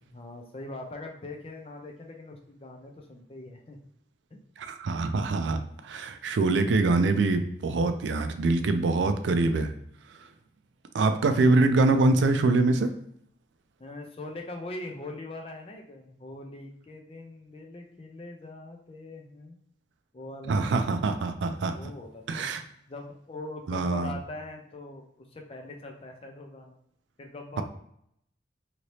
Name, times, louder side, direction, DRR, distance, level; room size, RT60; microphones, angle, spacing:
voice 1, 0.0-3.8 4.3-4.4 13.8-19.6 20.1-20.8 21.7-22.6 22.9-26.8 27.2-27.6, left 2 dB, 30° left, 2 dB, 0.5 m, -42 dB
voice 2, 4.6-9.7 10.9-12.9 20.5-21.7 22.3-22.6 23.7-24.1, right 3 dB, 75° right, 8 dB, 0.4 m, -24 dB
2.9 x 2.7 x 3.1 m, 0.72 s
head